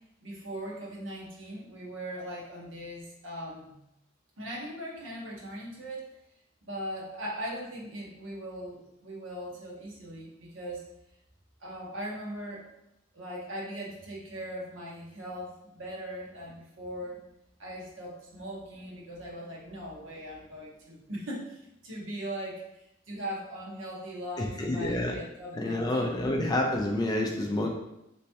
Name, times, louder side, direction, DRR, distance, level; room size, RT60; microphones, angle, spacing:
voice 1, 0.2-3.8 4.4-6.1 6.6-10.8 11.6-12.6 13.1-17.2 17.6-26.1, equal, 75° right, -4 dB, 1.0 m, -39 dB
voice 2, 24.4-25.1 25.6-27.7, left 1 dB, 20° left, 0 dB, 0.4 m, -28 dB
3.3 x 3.0 x 2.9 m, 0.85 s
head